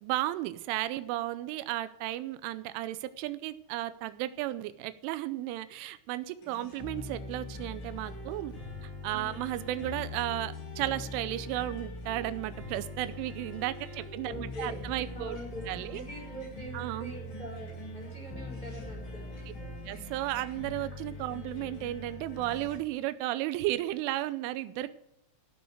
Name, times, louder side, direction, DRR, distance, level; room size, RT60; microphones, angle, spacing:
voice 1, 0.0-8.5 8.8-15.4 15.7-16.0 16.7-17.1 19.9-24.9, right 15 dB, 90° right, 13 dB, 3.2 m, -34 dB
sound 1, 6.4-22.8, left 2 dB, 65° left, 8.1 m, -42 dB
voice 2, 9.1-9.5 14.2-14.8 15.1-19.4, equal, 10° left, -1 dB, 3.8 m, -44 dB
16.0 x 6.3 x 7.8 m, 0.80 s
omnidirectional pair, 5.5 m